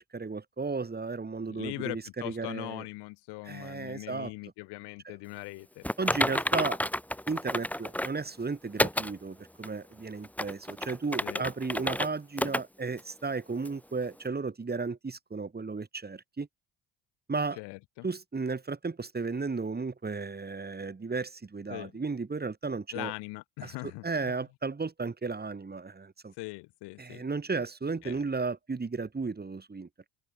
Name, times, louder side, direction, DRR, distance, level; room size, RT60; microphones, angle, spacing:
voice 1, 0.0-2.8 3.4-4.3 5.0-5.2 6.0-6.8 7.3-16.5 17.3-17.6 18.0-23.1 23.6-23.7 24.0-26.3 27.0-29.9, right 4 dB, 25° right, 3.1 m, -34 dB
voice 2, 1.5-5.9 11.2-11.4 17.6-18.1 21.7-21.9 22.9-24.3 26.4-27.2 28.0-28.2, left 24 dB, 75° left, 3.7 m, -41 dB
Typing, 5.8-8.2 8.8-9.1 9.6-9.7 10.2-12.1 12.4-12.6 13.0-13.1 13.6-13.7, left 1 dB, 5° left, 2.7 m, -30 dB
open air
hypercardioid pair, 60°, 41 cm